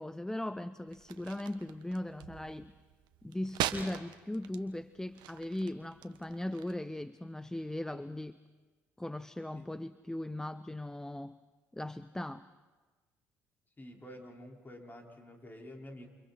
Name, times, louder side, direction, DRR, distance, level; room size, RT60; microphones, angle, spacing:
voice 1, 0.0-2.7 3.2-8.4 9.0-11.4 11.7-12.5, left 1 dB, 5° left, 15 dB, 0.6 m, -39 dB
sound 1, 0.9-6.8, right 11 dB, 70° right, 1.3 m, -42 dB
voice 2, 13.8-16.1, left 1 dB, 25° left, 1 dB, 4.6 m, -49 dB
29.0 x 28.0 x 4.3 m, 1.3 s
hypercardioid pair, 60°, 8 cm